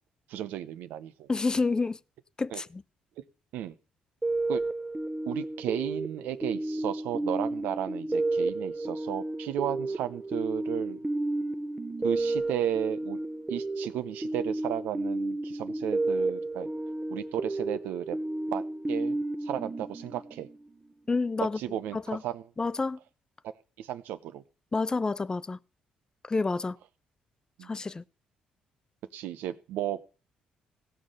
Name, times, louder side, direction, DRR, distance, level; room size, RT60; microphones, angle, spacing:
voice 1, 0.3-1.3 2.5-2.6 3.2-3.3 3.5-3.7 4.5-4.6 5.3-11.0 12.0-13.2 13.5-16.7 17.1-18.2 18.5-18.6 18.9-20.5 21.6-22.4 23.8-24.4 27.6-27.7 29.1-30.0, right 11 dB, 80° right, 0.8 m, -34 dB
voice 2, 1.3-2.0 2.4-2.8 21.1-21.6 21.9-22.2 22.6-23.0 24.7-25.6 26.2-26.8 27.6-28.0, left 3 dB, 25° left, 0.5 m, -29 dB
sound 1, 4.2-20.6, right 2 dB, 20° right, 0.9 m, -32 dB
16.5 x 5.7 x 6.5 m
supercardioid pair, 65°, 3 cm